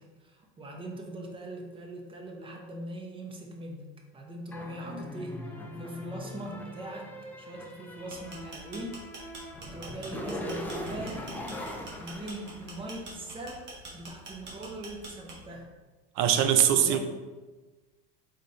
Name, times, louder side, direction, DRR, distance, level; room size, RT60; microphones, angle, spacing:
voice 1, 0.0-9.3 9.6-11.3 12.0-13.7 13.9-15.7 16.7-17.0, right 1 dB, 15° right, 1 dB, 0.7 m, -41 dB
sound 1, 4.5-13.2, left 1 dB, 5° left, 0.3 m, -41 dB
sound 2, 8.0-15.6, right 3 dB, 35° right, 1.2 m, -45 dB
voice 2, 16.2-17.0, right 9 dB, 60° right, 8 dB, 0.6 m, -22 dB
4.1 x 4.1 x 3.2 m, 1.2 s
supercardioid pair, 135°, 30 cm